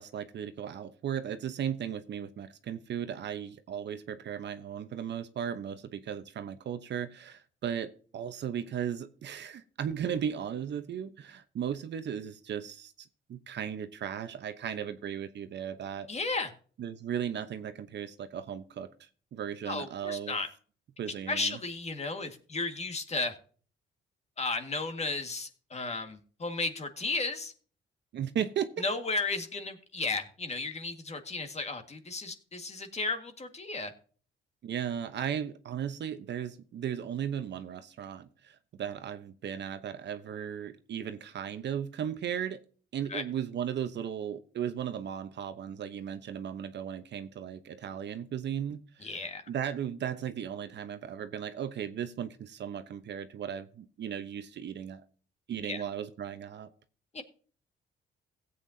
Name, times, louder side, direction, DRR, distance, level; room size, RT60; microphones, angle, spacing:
voice 1, 0.0-16.1 16.8-20.4 21.0-21.6 28.1-28.7 34.6-42.6 42.9-55.0 55.5-56.7, right 9 dB, 60° right, 10 dB, 1.0 m, -36 dB
voice 2, 16.1-16.5 19.7-20.5 21.3-23.3 24.4-27.5 28.8-33.9 43.1-43.2 49.0-49.4 55.7-55.8 57.1-57.2, left 3 dB, 35° left, 7 dB, 1.8 m, -34 dB
16.5 x 8.2 x 2.8 m, 0.42 s
cardioid pair, 90°, 20 cm